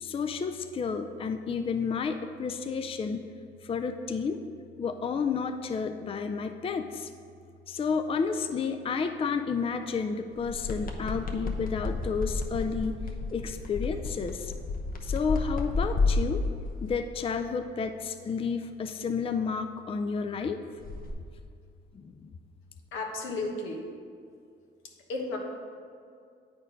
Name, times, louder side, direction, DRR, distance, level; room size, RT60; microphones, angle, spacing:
voice 1, 0.0-3.2 3.6-4.4 4.8-7.1 7.7-12.9 13.3-14.5 15.0-16.4 16.8-20.6 21.9-22.3, left 5 dB, 30° left, 7 dB, 0.4 m, -31 dB
sound 1, 10.4-16.9 20.8-21.1, left 3 dB, 45° left, 0.9 m, -31 dB
voice 2, 22.9-23.8 25.1-25.4, left 2 dB, 85° left, 1 dB, 1.1 m, -33 dB
8.6 x 4.4 x 5.2 m, 2.3 s
cardioid pair, 90°, 20 cm